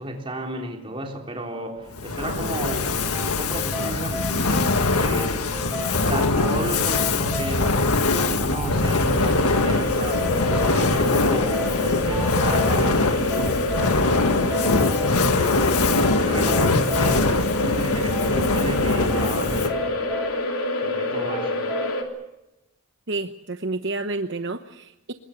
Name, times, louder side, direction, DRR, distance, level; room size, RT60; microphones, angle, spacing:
voice 1, 0.0-5.5 6.0-13.6 14.1-15.1 15.6-15.9 16.2-20.0 20.8-21.6, right 1 dB, 25° right, 3.5 m, -33 dB
Fire, 1.9-19.9, left 3 dB, 85° left, 1.8 m, -23 dB
sound 1, 3.1-21.9, right 1 dB, ahead, 2.3 m, -35 dB
sound 2, 9.0-22.0, left 2 dB, 70° left, 3.4 m, -27 dB
voice 2, 23.1-25.1, right 2 dB, 55° right, 1.0 m, -29 dB
25.5 x 21.5 x 7.1 m
head